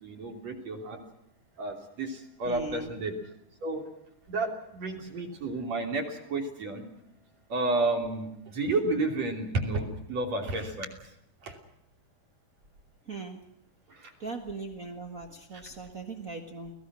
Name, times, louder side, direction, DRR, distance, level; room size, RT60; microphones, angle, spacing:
voice 1, 0.0-1.0 1.6-3.1 3.6-3.8 4.3-6.8 7.5-10.9 11.4-11.6 13.1-13.2 13.9-14.1 15.5-15.6, right 2 dB, 45° right, 2 dB, 4.0 m, -31 dB
voice 2, 2.4-2.9 13.1-13.4 14.2-16.7, right 3 dB, 85° right, 5 dB, 0.7 m, -39 dB
29.5 x 18.5 x 6.2 m, 0.80 s
omnidirectional pair, 4.4 m